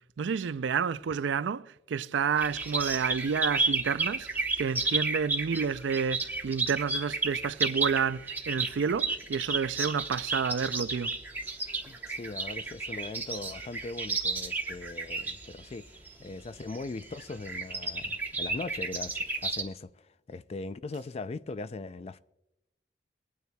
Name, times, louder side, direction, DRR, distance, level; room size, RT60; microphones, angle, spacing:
voice 1, 0.2-11.2, right 6 dB, 85° right, 0.4 m, -30 dB
sound 1, 2.4-19.6, right 3 dB, 10° right, 1.0 m, -32 dB
voice 2, 11.9-22.2, left 3 dB, 35° left, 0.4 m, -40 dB
23.5 x 9.4 x 2.3 m
head